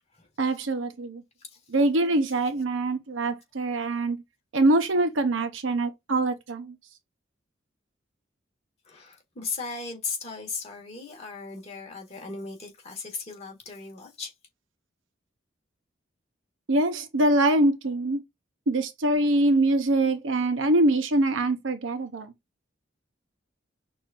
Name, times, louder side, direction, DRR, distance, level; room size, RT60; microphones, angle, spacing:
voice 1, 0.4-1.2 1.7-4.2 4.5-6.8 16.7-18.2 18.7-22.3, right 2 dB, 90° right, 0.8 m, -24 dB
voice 2, 8.8-14.3, left 4 dB, 35° left, 1.6 m, -37 dB
6.1 x 2.6 x 2.5 m
head